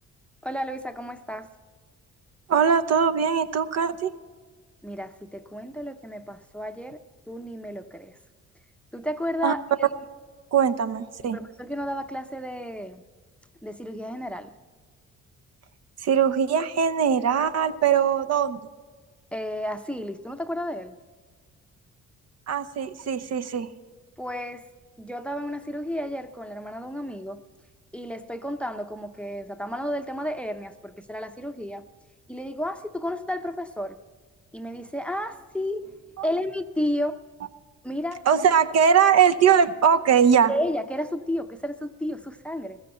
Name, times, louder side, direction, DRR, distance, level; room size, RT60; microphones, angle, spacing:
voice 1, 0.4-1.5 4.8-7.0 7.3-8.2 8.9-9.9 11.2-13.0 13.6-14.5 19.3-21.0 24.2-24.6 25.0-27.4 27.9-31.8 32.3-34.0 34.5-35.9 36.2-37.2 37.8-38.2 40.5-42.8, equal, 5° left, 9 dB, 0.7 m, -32 dB
voice 2, 2.5-4.1 9.4-9.5 10.5-11.4 16.0-18.6 22.5-23.7 38.3-40.5, right 7 dB, 55° right, 9 dB, 0.8 m, -21 dB
16.0 x 14.5 x 4.4 m, 1.5 s
cardioid pair, 90°, 30 cm